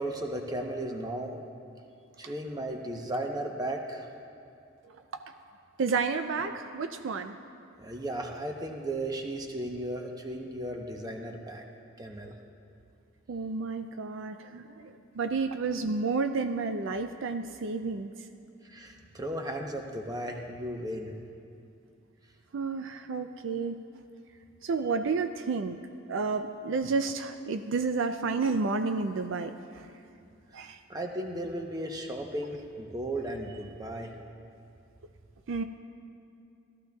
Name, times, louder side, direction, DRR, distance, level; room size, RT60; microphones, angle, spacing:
voice 1, 0.0-1.4 2.2-4.1 7.8-11.6 12.0-12.4 18.6-21.2 30.9-34.1, right 1 dB, 20° right, 2 dB, 0.8 m, -35 dB
voice 2, 5.8-7.4 13.3-18.1 22.5-23.8 24.6-25.8 26.1-29.9 30.5-30.8 35.5-35.6, right 4 dB, 65° right, 8 dB, 0.4 m, -31 dB
17.5 x 13.5 x 2.3 m, 2.5 s
head